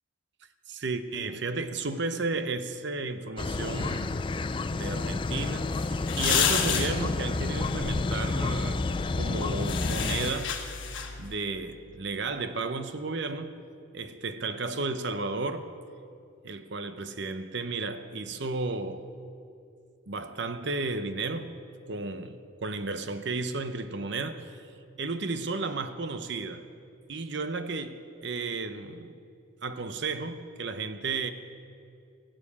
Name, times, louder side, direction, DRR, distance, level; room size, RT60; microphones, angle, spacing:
voice 1, 0.7-4.2 4.7-8.9 9.2-10.6 11.2-13.6 13.9-15.7 16.4-19.1 20.1-21.5 21.9-24.6 25.0-26.6 27.1-29.2 29.6-31.3, right 3 dB, 60° right, 0.8 m, -33 dB
sound 1, 3.4-10.3, left 3 dB, 25° left, 0.3 m, -30 dB
sound 2, 5.2-11.3, left 7 dB, 65° left, 1.4 m, -32 dB
17.5 x 7.7 x 8.5 m
head